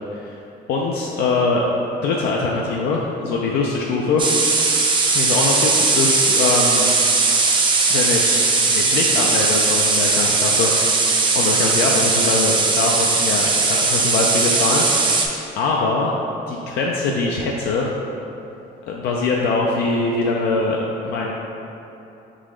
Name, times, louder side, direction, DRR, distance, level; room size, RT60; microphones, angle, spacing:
voice 1, 0.7-1.7 2.0-4.2 5.1-6.9 7.9-11.0 11.3-15.2 15.6-16.1 16.5-17.9 18.9-21.3, left 3 dB, 80° left, -2 dB, 0.4 m, -22 dB
sound 1, 4.2-15.3, right 3 dB, 30° right, 0.5 m, -18 dB
3.9 x 3.7 x 3.1 m, 2.9 s
cardioid pair, 110°, 17 cm